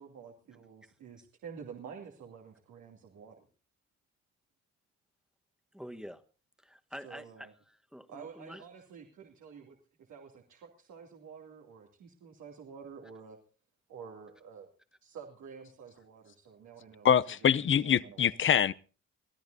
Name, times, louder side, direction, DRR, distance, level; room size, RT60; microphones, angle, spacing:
voice 1, 0.0-3.5 7.0-7.5 8.1-9.7 10.1-13.4 13.9-14.7 15.0-18.3, right 6 dB, 80° right, 2.7 m, -49 dB
voice 2, 5.7-6.2 6.6-8.6, equal, ahead, 1.3 m, -47 dB
voice 3, 17.0-18.7, left 8 dB, 40° left, 0.6 m, -24 dB
24.0 x 14.5 x 2.7 m
cardioid pair, 90°, 30 cm